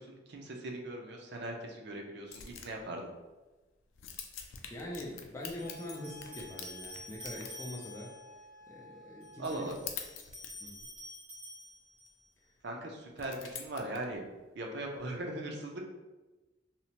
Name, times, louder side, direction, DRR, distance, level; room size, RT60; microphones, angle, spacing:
voice 1, 0.0-3.1 9.4-9.7 12.6-14.2 14.6-15.8, right 1 dB, 55° right, 1 dB, 0.4 m, -39 dB
sound 1, 2.3-2.8 3.2-3.3 3.9-7.6 9.4-11.0 11.9-12.1 13.2-14.1, left 7 dB, 85° left, 0.3 m, -46 dB
voice 2, 4.7-8.1 8.7-9.7 10.6-10.8, left 1 dB, 15° left, -3 dB, 0.3 m, -43 dB
sound 2, 5.5-8.3 9.2-12.3, left 1 dB, 30° right, 1.1 m, -49 dB
Wind instrument woodwind instrument, 5.6-9.5, left 2 dB, 80° right, 1.2 m, -54 dB
2.8 x 2.1 x 2.8 m, 1.1 s
head